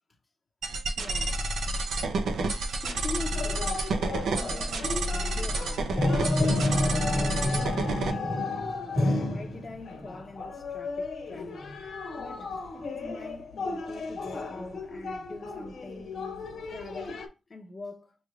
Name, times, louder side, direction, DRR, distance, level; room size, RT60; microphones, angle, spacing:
sound 1, 0.6-8.1, right 2 dB, 80° right, 0.6 m, -30 dB
voice 1, 1.0-1.4 2.7-6.5 7.1-8.8 9.2-11.6 12.2-16.1 16.7-18.2, left 2 dB, 35° left, 0.7 m, -43 dB
sound 2, 2.8-17.3, left 2 dB, 80° left, 1.3 m, -32 dB
6.1 x 3.2 x 2.4 m
cardioid pair, 95°, 0 cm